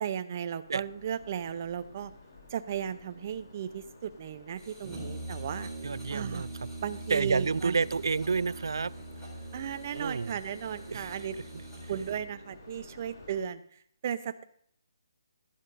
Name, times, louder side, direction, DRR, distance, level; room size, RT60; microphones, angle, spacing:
voice 1, 0.0-2.1 2.5-5.7 6.1-6.5 6.8-7.8 9.5-11.4 11.9-14.4, right 9 dB, 35° right, 11 dB, 0.7 m, -35 dB
sound 1, 0.6-13.4, left 2 dB, 55° left, 4.1 m, -53 dB
sound 2, 4.5-12.1, right 1 dB, 5° left, 4.4 m, -55 dB
Brass instrument, 4.8-12.3, right 2 dB, 10° right, 4.1 m, -43 dB
voice 2, 5.8-6.5 7.1-8.9 9.9-10.4 10.9-11.2 11.8-11.9, right 4 dB, 80° right, 21 dB, 0.4 m, -29 dB
16.0 x 11.0 x 2.7 m, 0.64 s
hypercardioid pair, 160°, 2 cm